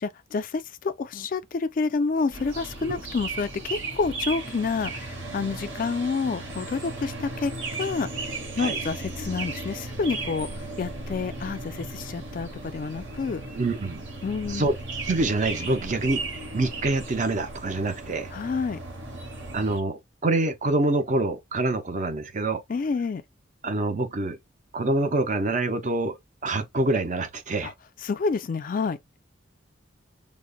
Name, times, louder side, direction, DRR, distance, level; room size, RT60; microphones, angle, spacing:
voice 1, 0.0-7.5 7.8-8.1 8.6-10.5 10.8-13.4 14.2-14.7 18.3-18.8 22.7-23.2 27.6-27.7 28.0-29.0, left 4 dB, 45° left, 0.3 m, -28 dB
sound 1, 2.3-19.8, right 3 dB, 65° right, 1.1 m, -36 dB
voice 2, 13.5-14.0 14.5-14.7 15.1-18.3 19.5-22.6 23.6-24.4 24.7-27.7, right 2 dB, 40° right, 0.5 m, -26 dB
5.0 x 2.1 x 2.2 m
head